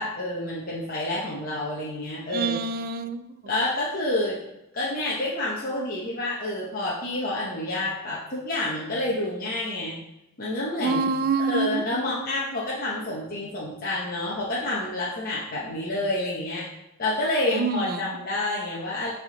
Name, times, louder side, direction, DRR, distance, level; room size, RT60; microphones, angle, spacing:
voice 1, 0.0-2.6 3.5-4.4 4.7-10.0 10.4-11.1 11.5-16.7 17.0-19.1, left 1 dB, 45° left, -6 dB, 0.9 m, -28 dB
voice 2, 2.3-3.2 10.8-11.8 17.5-18.0, right 4 dB, 45° right, 11 dB, 0.4 m, -26 dB
8.0 x 3.5 x 3.8 m, 0.93 s
head